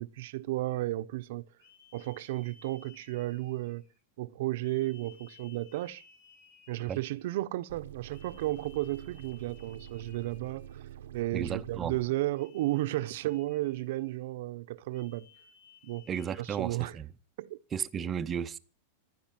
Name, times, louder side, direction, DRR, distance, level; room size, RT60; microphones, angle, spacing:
voice 1, 0.0-1.4 1.9-3.8 4.2-6.0 6.7-10.8 11.1-15.3 15.8-16.0 16.4-17.0 17.4-17.6, right 17 dB, 60° right, 0.8 m, -33 dB
sound 1, 0.7-0.9 1.6-4.0 4.6-7.3 8.1-10.9 12.3-14.2 14.9-17.0, left 6 dB, 60° left, 6.4 m, -60 dB
sound 2, 7.7-12.1, right 11 dB, 85° right, 0.9 m, -47 dB
voice 2, 11.3-12.0 16.1-17.1 17.7-18.6, right 7 dB, 20° right, 0.7 m, -34 dB
15.0 x 11.5 x 7.4 m
supercardioid pair, 165°, 0 cm